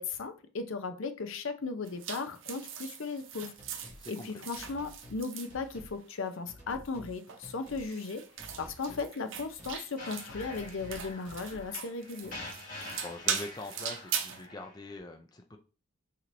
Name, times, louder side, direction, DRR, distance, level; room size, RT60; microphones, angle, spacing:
voice 1, 0.0-3.5 4.1-8.2 8.6-12.3, left 4 dB, 70° left, 0.6 m, -36 dB
sound 1, 1.8-6.2 6.9-14.4, right 8 dB, 65° right, 0.6 m, -40 dB
sound 2, 3.6-4.0 4.5-5.2 5.5-6.0 6.5-7.1 7.4-7.9 8.4-9.1 9.3-9.8 10.3-11.7 12.2-12.5, left 1 dB, 20° right, 1.9 m, -50 dB
voice 2, 4.0-4.3 12.8-15.6, left 2 dB, 20° left, 0.4 m, -43 dB
sound 3, 10.0-15.0, left 2 dB, 40° left, 1.5 m, -46 dB
6.1 x 2.9 x 2.6 m
head